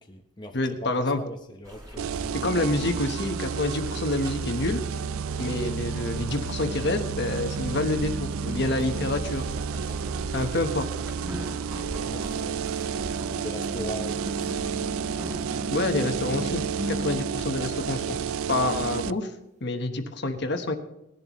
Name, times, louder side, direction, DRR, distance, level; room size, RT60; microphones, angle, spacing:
voice 1, 0.0-2.4 12.1-12.6 13.3-14.7, equal, 20° left, 3 dB, 0.9 m, -40 dB
voice 2, 0.5-1.2 2.3-4.8 5.4-9.4 10.3-10.9 15.7-18.2 18.5-19.3 19.6-20.8, left 2 dB, 55° left, 6 dB, 1.2 m, -27 dB
sound 1, 1.6-15.8, equal, 15° right, 3.5 m, -42 dB
sound 2, 2.0-19.1, right 7 dB, 80° right, 0.4 m, -31 dB
sound 3, 4.8-18.4, equal, 35° right, 0.7 m, -40 dB
19.0 x 11.0 x 3.1 m, 0.87 s
head